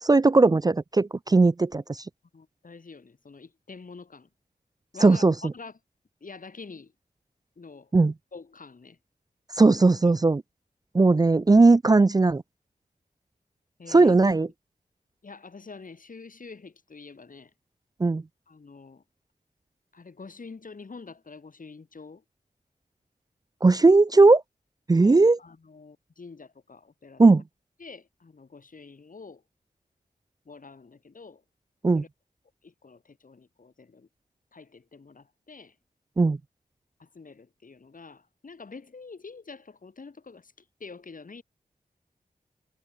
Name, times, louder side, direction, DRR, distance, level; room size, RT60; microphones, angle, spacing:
voice 1, 0.0-2.0 5.0-5.3 7.9-8.1 9.6-10.4 10.9-12.4 13.9-14.5 18.0-18.2 23.6-24.4 24.9-25.4 27.2-27.4 31.8-32.0 36.2-36.4, right 3 dB, 25° right, 0.4 m, -18 dB
voice 2, 2.3-4.3 4.9-5.7 6.2-6.9 7.6-7.9 8.3-9.0 13.8-14.2 15.2-17.5 18.5-19.0 19.9-22.2 25.0-27.2 27.8-29.4 30.4-31.4 31.9-32.1 32.6-34.1 34.5-35.7 37.0-40.5 40.8-41.4, left 4 dB, 65° left, 4.8 m, -46 dB
wide cardioid pair, 70°, 15 cm